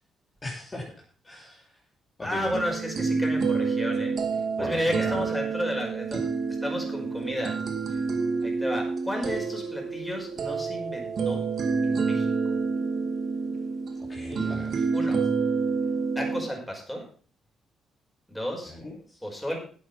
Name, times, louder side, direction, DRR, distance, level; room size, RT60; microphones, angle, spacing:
voice 1, 0.4-0.9 1.2-1.7 2.2-2.6 4.6-5.2 14.1-14.9 18.7-19.2, left 1 dB, 25° left, -3 dB, 3.4 m, -37 dB
voice 2, 2.2-4.1 4.6-6.3 6.6-7.6 8.4-11.4 11.8-12.3 14.9-15.2 16.2-17.0 18.3-18.7 19.2-19.6, equal, 5° left, 0 dB, 5.4 m, -32 dB
sound 1, 2.5-16.4, right 4 dB, 55° right, 1.9 m, -28 dB
11.0 x 8.3 x 5.6 m, 0.43 s
cardioid pair, 90°, 0 cm